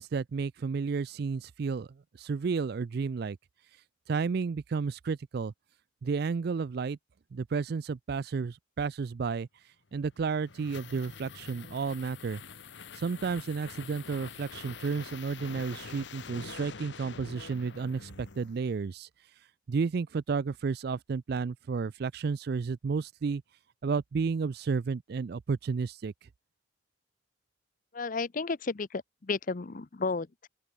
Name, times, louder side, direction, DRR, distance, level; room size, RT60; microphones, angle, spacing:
voice 1, 0.0-3.4 4.1-5.5 6.0-7.0 7.3-9.5 9.9-12.4 12.9-19.1 19.7-23.4 23.8-26.1, right 5 dB, 55° right, 0.4 m, -32 dB
sound 1, 10.0-18.9, left 5 dB, 65° left, 1.0 m, -46 dB
voice 2, 27.9-30.5, left 4 dB, 45° left, 0.6 m, -33 dB
open air
head